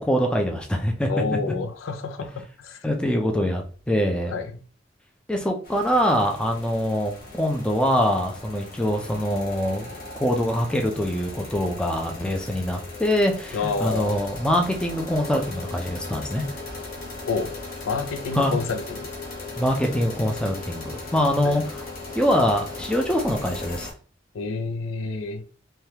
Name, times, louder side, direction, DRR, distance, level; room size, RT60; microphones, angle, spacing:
voice 1, 0.0-1.1 2.8-4.3 5.3-9.9 10.2-16.4 18.3-18.6 19.6-21.9 22.1-23.9, equal, 5° left, 0.4 m, -24 dB
voice 2, 1.1-2.9 4.3-4.6 13.5-14.2 17.3-17.5 17.9-19.1 21.4-21.6 24.3-25.4, left 4 dB, 90° left, 0.4 m, -29 dB
sound 1, 5.6-23.9, left 3 dB, 45° left, 0.8 m, -38 dB
3.3 x 2.3 x 2.8 m
head